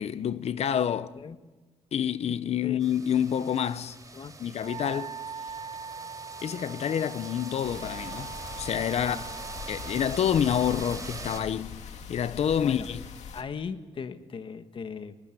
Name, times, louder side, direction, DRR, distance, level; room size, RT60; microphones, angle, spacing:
voice 1, 0.0-1.2 1.9-4.0 4.4-5.2 6.4-8.3 8.6-9.2 9.7-11.8 12.1-13.0, left 9 dB, 70° left, 0.9 m, -28 dB
sound 1, 2.8-11.4, right 3 dB, 30° right, 5.8 m, -43 dB
Wind instrument woodwind instrument, 4.6-10.2, right 6 dB, 60° right, 1.2 m, -41 dB
sound 2, 7.6-13.4, left 6 dB, 90° left, 2.3 m, -42 dB
voice 2, 12.3-12.9 13.3-15.2, left 6 dB, 50° left, 1.6 m, -38 dB
22.5 x 21.5 x 9.1 m
cardioid pair, 115°, 11 cm